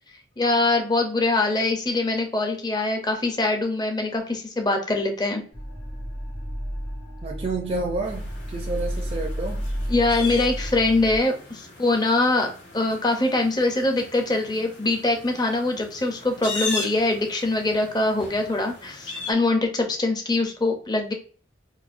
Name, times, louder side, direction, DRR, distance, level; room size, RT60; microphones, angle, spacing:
voice 1, 0.4-5.4 9.9-21.1, left 2 dB, 25° left, 0.6 m, -23 dB
sound 1, 5.5-11.2, equal, 60° left, 1.1 m, -32 dB
voice 2, 7.2-9.6, right 3 dB, 35° right, 0.4 m, -30 dB
sound 2, 8.0-19.3, left 3 dB, 85° left, 1.2 m, -38 dB
4.0 x 2.5 x 2.5 m
head